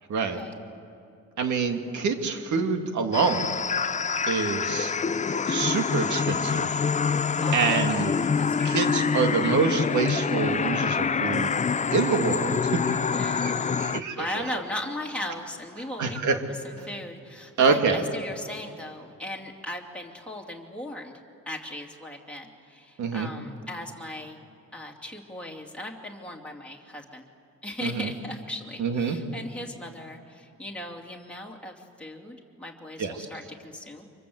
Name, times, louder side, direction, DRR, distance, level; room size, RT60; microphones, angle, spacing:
voice 1, 0.1-0.4 1.4-3.5 4.3-4.9 5.5-6.8 7.5-8.1 8.6-11.5 11.9-14.3 16.0-16.4 17.6-18.0 23.0-23.3 27.8-28.1 28.8-29.2 33.0-33.1, right 5 dB, 70° right, 5 dB, 2.4 m, -26 dB
sound 1, 3.1-14.0, left 6 dB, 25° left, 0.6 m, -26 dB
voice 2, 7.4-8.0 8.4-8.8 13.1-13.8 14.2-24.4 24.7-27.2 27.6-34.0, left 1 dB, 5° left, -2 dB, 2.8 m, -38 dB
29.0 x 24.5 x 7.9 m, 2.6 s
cardioid pair, 90°, 30 cm